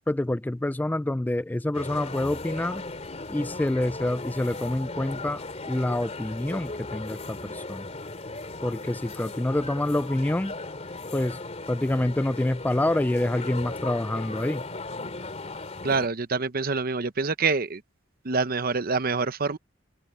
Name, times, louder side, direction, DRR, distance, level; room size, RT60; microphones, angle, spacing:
voice 1, 0.1-2.8 3.3-7.9 8.6-10.5 11.1-11.4 11.7-14.6, left 1 dB, 10° left, 0.3 m, -27 dB
sound 1, 1.7-16.1, left 2 dB, 35° left, 2.9 m, -37 dB
voice 2, 15.8-17.8 18.2-19.6, right 4 dB, 50° right, 0.9 m, -26 dB
open air
head